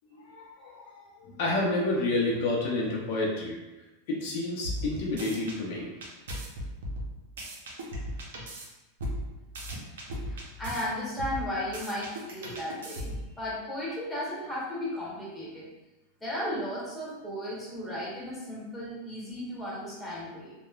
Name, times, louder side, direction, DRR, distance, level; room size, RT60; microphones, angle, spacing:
voice 1, 0.1-3.6 4.1-5.9, left 2 dB, 65° left, -3 dB, 0.5 m, -30 dB
sound 1, 4.6-5.6 6.0-8.7 9.0-10.8 11.2-13.3, equal, 85° right, 0.6 m, -37 dB
voice 2, 10.3-15.7 16.2-20.5, left 1 dB, 5° left, -7 dB, 1.0 m, -35 dB
3.0 x 2.0 x 2.3 m, 1.0 s
supercardioid pair, 130°, 0 cm